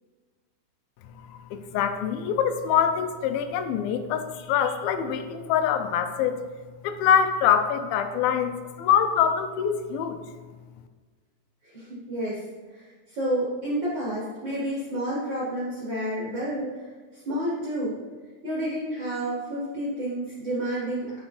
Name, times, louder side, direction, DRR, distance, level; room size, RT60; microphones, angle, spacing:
voice 1, 1.3-6.4 6.8-10.2, left 8 dB, 90° left, 8 dB, 2.5 m, -24 dB
voice 2, 11.7-12.4 12.7-16.7 17.1-17.9 18.4-21.2, right 1 dB, 55° right, -7 dB, 1.3 m, -30 dB
9.9 x 5.2 x 3.2 m, 1.4 s
omnidirectional pair, 4.1 m